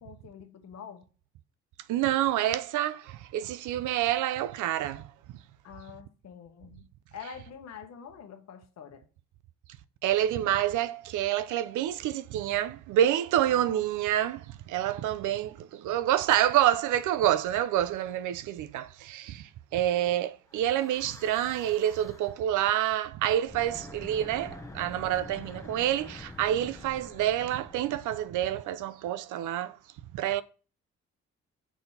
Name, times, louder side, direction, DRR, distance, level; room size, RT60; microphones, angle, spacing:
voice 1, 0.0-1.1 5.6-9.0 14.9-15.1, left 7 dB, 60° left, 1.0 m, -46 dB
voice 2, 1.9-5.1 10.0-29.8 30.1-30.4, right 12 dB, 80° right, 0.5 m, -28 dB
Breathing / Wind, 20.5-22.5 23.3-28.7, left 2 dB, 10° left, 0.7 m, -47 dB
6.8 x 6.1 x 2.8 m
cardioid pair, 90°, 30 cm